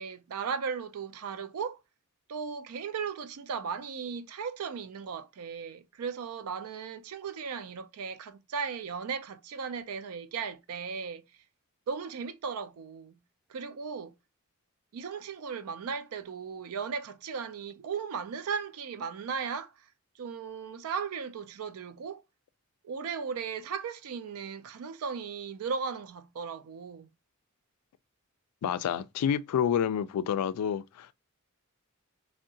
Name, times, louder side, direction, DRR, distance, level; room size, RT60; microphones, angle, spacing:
voice 1, 0.0-1.8 2.3-11.2 11.9-13.2 13.5-14.1 14.9-19.9 20.2-22.2 22.8-27.1, right 6 dB, 70° right, 0.4 m, -36 dB
voice 2, 28.6-31.1, left 8 dB, 85° left, 0.3 m, -29 dB
3.5 x 2.1 x 2.6 m
head